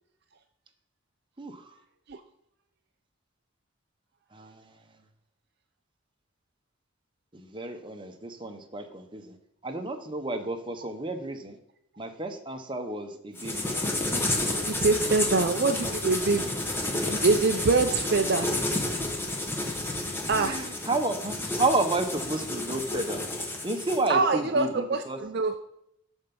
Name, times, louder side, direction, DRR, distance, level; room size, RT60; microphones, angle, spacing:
voice 1, 1.4-1.8 4.3-4.9 7.3-9.4 9.6-11.6 12.0-13.7 20.2-23.2 23.6-25.2, right 2 dB, 25° right, 5 dB, 1.0 m, -31 dB
sound 1, 13.4-24.1, left 2 dB, 10° left, 1.3 m, -30 dB
voice 2, 14.7-16.6 16.9-18.5 20.3-20.6 24.1-25.5, right 3 dB, 50° right, 7 dB, 0.5 m, -25 dB
12.5 x 4.5 x 5.4 m, 0.76 s
head